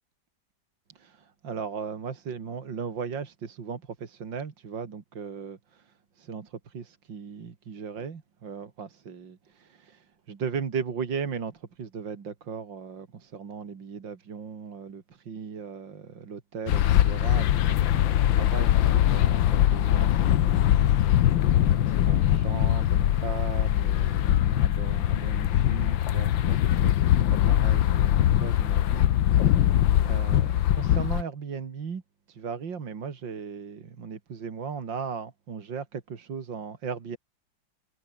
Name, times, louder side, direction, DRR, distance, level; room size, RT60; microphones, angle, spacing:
voice 1, 0.9-28.1 28.4-32.0 32.3-37.2, right 6 dB, 75° right, 2.9 m, -37 dB
sound 1, 16.7-31.2, left 12 dB, 80° left, 1.7 m, -22 dB
omnidirectional pair, 2.1 m